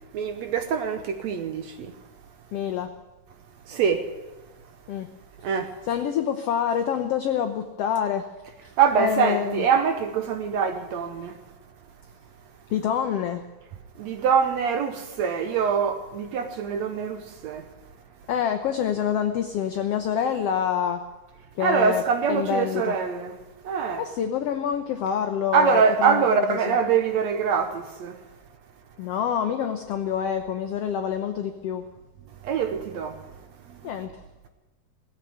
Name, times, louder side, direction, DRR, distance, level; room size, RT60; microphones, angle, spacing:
voice 1, 0.1-1.9 3.7-4.1 5.4-5.7 8.8-11.4 14.0-17.7 21.6-23.4 23.6-24.0 25.5-28.2 32.4-33.2 33.8-33.9, right 6 dB, 70° right, 1.8 m, -24 dB
voice 2, 2.5-2.9 4.9-5.1 5.9-8.3 9.0-9.6 12.7-13.4 18.3-21.0 21.6-22.0 22.3-23.0 24.0-26.8 29.0-31.8 33.8-34.2, left 8 dB, 85° left, 1.3 m, -26 dB
17.5 x 8.1 x 9.3 m
omnidirectional pair, 3.8 m